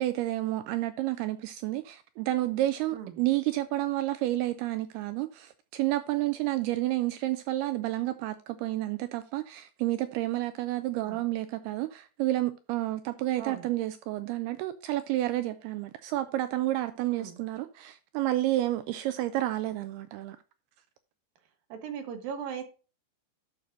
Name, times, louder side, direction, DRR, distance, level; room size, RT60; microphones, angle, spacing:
voice 1, 0.0-20.4, right 15 dB, 85° right, 2.3 m, -30 dB
voice 2, 13.4-13.7 17.1-17.4 21.7-22.6, right 7 dB, 65° right, 2.7 m, -38 dB
12.0 x 6.4 x 2.6 m
omnidirectional pair, 5.0 m